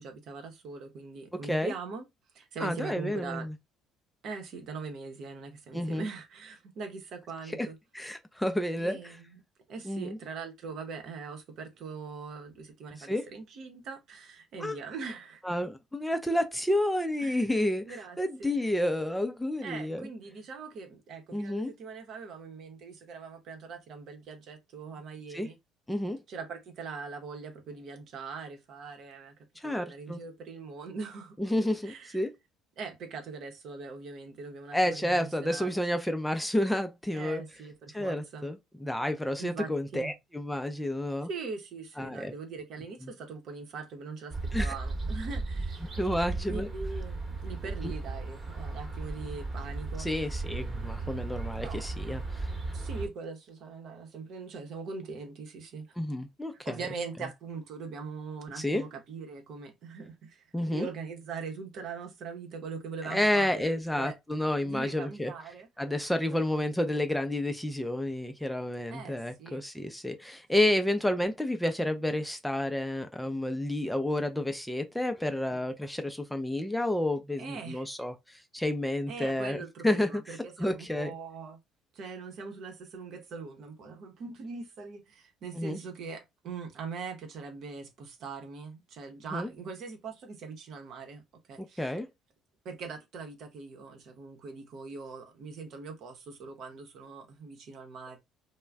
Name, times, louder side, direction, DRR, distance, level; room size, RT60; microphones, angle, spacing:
voice 1, 0.0-2.0 2.3-3.5 4.2-7.8 8.8-9.4 9.7-15.4 17.2-17.4 17.9-18.5 19.6-25.6 26.3-31.4 31.8-32.2 32.8-35.7 37.1-38.5 39.4-40.1 41.3-45.9 46.5-50.1 51.6-51.9 52.7-55.9 56.6-63.6 64.0-64.1 64.6-65.7 66.3-66.6 68.9-69.6 77.4-77.9 79.1-81.6 81.9-91.2 91.5-91.9 92.6-98.2, right 4 dB, 60° right, 0.8 m, -41 dB
voice 2, 2.6-3.5 5.7-6.1 7.6-7.7 7.9-9.0 9.8-10.2 13.0-13.3 14.6-14.8 15.4-20.1 21.3-21.7 25.3-25.5 25.9-26.2 29.6-30.2 31.4-32.3 34.7-37.4 37.9-41.3 42.0-42.3 43.0-43.1 44.5-44.7 46.0-46.7 47.8-47.9 50.0-52.5 56.0-56.8 58.6-58.8 60.5-60.9 63.0-65.3 65.8-81.1 85.6-85.8 89.3-89.5 91.6-92.1, left 1 dB, 5° left, 0.5 m, -30 dB
sound 1, 44.3-53.1, right 3 dB, 30° right, 1.0 m, -35 dB
2.3 x 2.1 x 3.3 m
hypercardioid pair, 60°, 0 cm